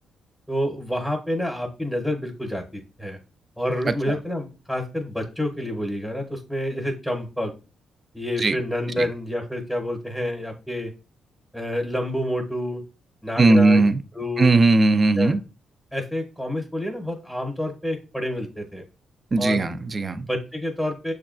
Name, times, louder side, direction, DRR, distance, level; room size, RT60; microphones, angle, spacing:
voice 1, 0.5-3.2 3.6-7.5 8.1-10.9 11.5-12.8 13.2-13.8 14.2-14.5 15.2-15.3 15.9-18.9 19.4-19.7 20.1-21.1, left 1 dB, ahead, 0.8 m, -28 dB
voice 2, 3.9-4.2 8.4-8.6 9.0-9.1 13.4-14.0 14.4-15.4 19.3-20.3, right 2 dB, 35° right, 0.4 m, -18 dB
6.3 x 2.3 x 2.4 m
cardioid pair, 85°, 0 cm